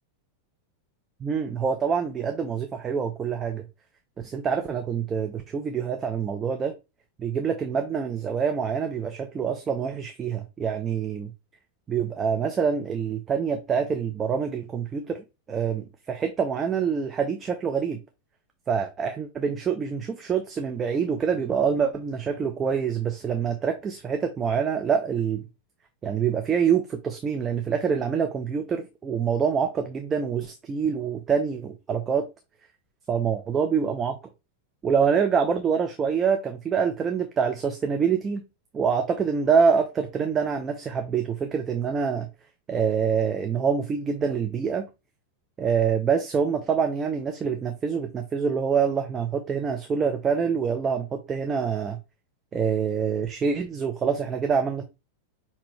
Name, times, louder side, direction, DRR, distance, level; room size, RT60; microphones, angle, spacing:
voice 1, 1.2-3.6 4.2-6.7 7.2-11.3 11.9-18.0 18.7-25.5 26.0-32.3 33.1-34.2 34.8-38.4 38.7-42.3 42.7-44.8 45.6-52.0 52.5-54.8, right 6 dB, 20° right, 0.6 m, -26 dB
6.0 x 2.8 x 3.1 m
figure-of-eight pair, 90°, 0 cm